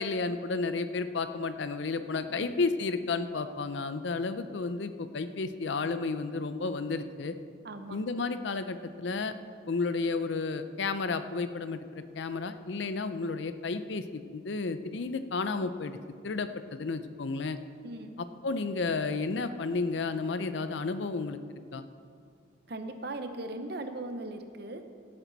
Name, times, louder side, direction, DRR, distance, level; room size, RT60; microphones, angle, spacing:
voice 1, 0.0-7.3 7.9-9.3 9.7-16.0 16.2-17.6 18.4-21.4 21.7-21.8, left 4 dB, 65° left, 11 dB, 0.5 m, -32 dB
voice 2, 7.6-8.0 17.8-18.2 22.7-24.8, right 2 dB, 55° right, 8 dB, 0.8 m, -38 dB
16.0 x 8.9 x 4.1 m, 2.2 s
head